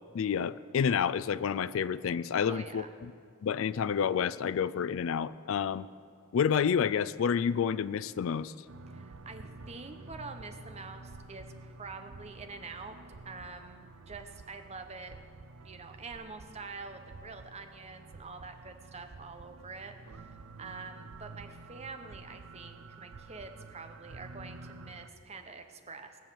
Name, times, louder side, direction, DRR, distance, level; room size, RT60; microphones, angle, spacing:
voice 1, 0.1-2.9 3.4-5.9 6.3-8.5, left 7 dB, 65° left, 17 dB, 0.3 m, -29 dB
voice 2, 2.4-2.9 8.9-13.0 13.2-15.2 15.6-26.2, right 4 dB, 30° right, 6 dB, 0.9 m, -46 dB
sound 1, 8.7-25.1, right 3 dB, 90° right, 0.7 m, -50 dB
19.0 x 7.3 x 6.9 m, 2.3 s
head